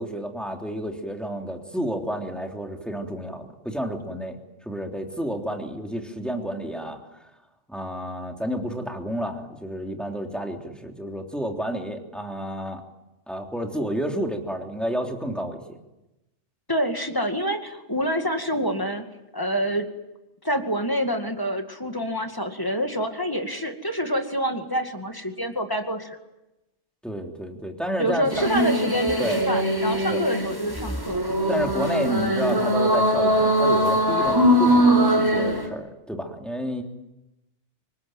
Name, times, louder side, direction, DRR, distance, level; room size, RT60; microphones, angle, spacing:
voice 1, 0.0-7.3 7.7-12.8 13.3-15.8 27.0-28.5 29.2-29.4 30.1-30.2 31.5-36.8, equal, ahead, 2 dB, 3.3 m, -30 dB
voice 2, 16.7-19.0 19.3-19.9 20.4-26.2 28.0-31.2, equal, 20° left, 5 dB, 2.2 m, -27 dB
sound 1, 28.3-35.7, equal, 20° right, 4.5 m, -21 dB
26.5 x 21.5 x 9.2 m, 0.95 s
omnidirectional pair, 1.2 m